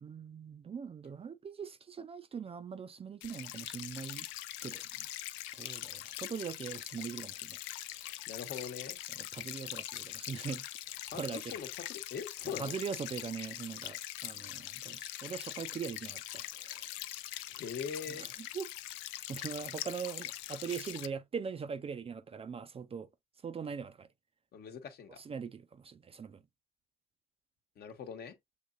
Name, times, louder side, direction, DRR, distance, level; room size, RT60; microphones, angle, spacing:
voice 1, 0.0-4.3 4.6-4.9 5.6-7.6 7.9-8.2 9.3-11.6 12.6-16.9 18.2-18.3 18.5-18.7 19.3-23.1 23.4-24.1 25.2-26.4, right 6 dB, 30° right, 0.5 m, -41 dB
sound 1, 3.2-21.1, left 15 dB, 75° left, 0.5 m, -43 dB
voice 2, 8.3-9.0 11.1-12.7 17.5-18.3 24.5-25.2 27.8-28.4, left 6 dB, 55° left, 1.1 m, -42 dB
6.5 x 2.8 x 2.4 m
hypercardioid pair, 65°, 20 cm